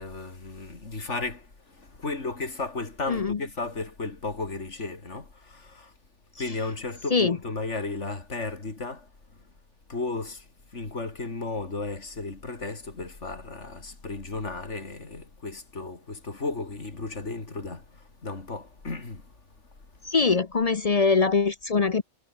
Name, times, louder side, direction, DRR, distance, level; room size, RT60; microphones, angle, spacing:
voice 1, 0.0-5.9 6.4-9.1 9.4-9.5 9.9-19.3, left 3 dB, 55° left, 3.5 m, -34 dB
voice 2, 3.1-3.4 7.1-7.4 20.1-22.0, left 4 dB, 40° left, 0.6 m, -22 dB
omnidirectional pair, 1.4 m